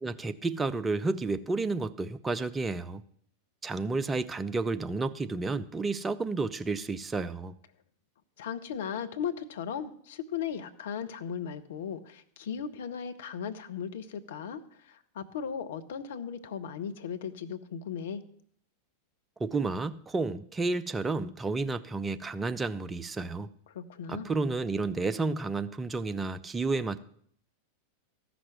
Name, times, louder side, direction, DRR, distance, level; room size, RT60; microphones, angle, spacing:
voice 1, 0.0-3.0 3.6-7.6 19.4-23.5 24.1-27.0, right 3 dB, 15° right, 11 dB, 0.5 m, -31 dB
voice 2, 8.4-18.2 23.7-24.3, left 7 dB, 60° left, 9 dB, 0.9 m, -37 dB
14.0 x 6.0 x 7.3 m, 0.64 s
figure-of-eight pair, 90°, 0 cm